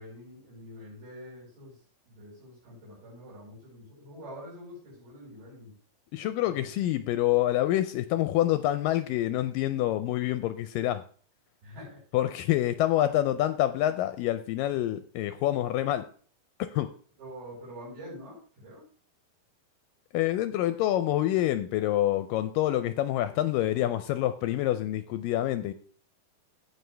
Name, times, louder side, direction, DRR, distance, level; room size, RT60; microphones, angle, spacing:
voice 1, 0.0-1.8 2.0-5.7 6.4-6.7 11.6-12.0 17.2-18.9, equal, 85° right, -7 dB, 6.7 m, -46 dB
voice 2, 6.1-11.0 12.1-16.1 16.6-16.9 20.1-25.7, left 13 dB, 80° left, 11 dB, 2.1 m, -27 dB
16.5 x 6.2 x 3.4 m, 0.43 s
omnidirectional pair, 4.3 m